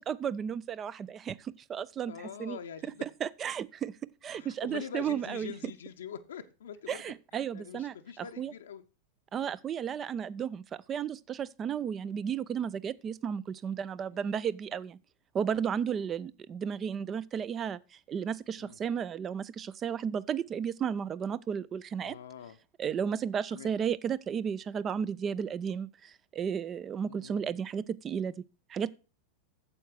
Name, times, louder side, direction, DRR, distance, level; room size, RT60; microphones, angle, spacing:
voice 1, 0.0-2.1 2.4-2.6 3.0-3.9 4.2-5.5 6.9-8.5 9.3-10.6 10.9-15.0 15.3-22.2 22.8-28.4 28.7-28.9, right 7 dB, 25° right, 0.4 m, -33 dB
voice 2, 2.1-3.1 4.3-7.0 7.3-8.8 12.5-12.7 14.1-14.2 18.6-18.8 22.0-22.6 23.5-23.7 27.1-27.6, left 8 dB, 65° left, 0.6 m, -44 dB
8.8 x 7.4 x 4.7 m
figure-of-eight pair, 90°, 0 cm